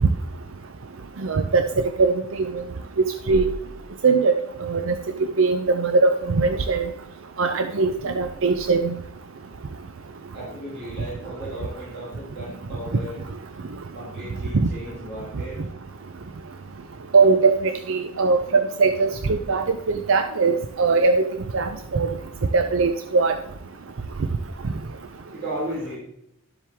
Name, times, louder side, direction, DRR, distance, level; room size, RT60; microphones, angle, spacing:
voice 1, 1.2-2.1 3.3-3.5 4.0-4.9 5.4-6.9 7.4-8.9 14.5-14.7 17.1-21.2 21.5-22.1 22.5-23.3, right 4 dB, 70° right, 7 dB, 0.6 m, -20 dB
voice 2, 10.3-13.2 13.9-15.6 25.3-26.0, right 1 dB, 50° right, -8 dB, 4.1 m, -35 dB
12.0 x 7.5 x 3.5 m, 0.80 s
head